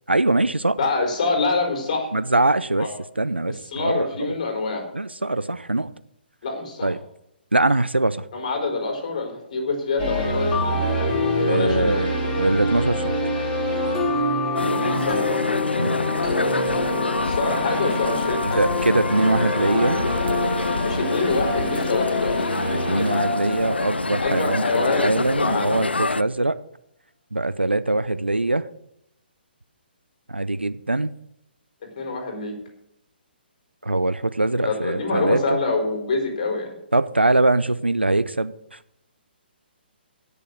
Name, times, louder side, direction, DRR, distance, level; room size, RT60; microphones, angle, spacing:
voice 1, 0.1-0.8 2.1-2.9 3.2-4.3 4.9-5.9 6.8-7.0 7.5-8.2 11.4-13.1 15.8-16.2 18.4-20.0 22.9-26.6 27.3-28.7 30.3-31.1 33.8-35.6 36.9-38.8, right 2 dB, 80° right, 14 dB, 0.7 m, -22 dB
voice 2, 0.8-2.1 2.8-2.9 3.5-4.9 6.4-6.9 8.3-10.8 11.5-12.0 14.6-15.5 17.2-18.6 20.8-22.5 24.2-25.8 32.0-32.6 34.6-36.7, left 3 dB, 40° left, 2 dB, 4.3 m, -26 dB
sound 1, 10.0-24.8, left 1 dB, 20° left, 4.9 m, -25 dB
sound 2, 14.6-26.2, left 3 dB, 75° left, 0.5 m, -27 dB
17.5 x 6.9 x 6.4 m, 0.79 s
figure-of-eight pair, 130°, 6 cm